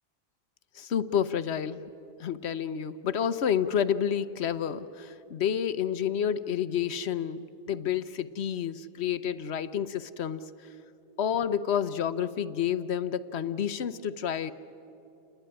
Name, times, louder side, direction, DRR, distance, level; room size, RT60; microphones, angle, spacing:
voice 1, 0.7-1.9 2.2-10.5 11.2-14.5, left 8 dB, 85° left, 14 dB, 1.1 m, -29 dB
29.0 x 20.5 x 9.9 m, 2.7 s
omnidirectional pair, 1.1 m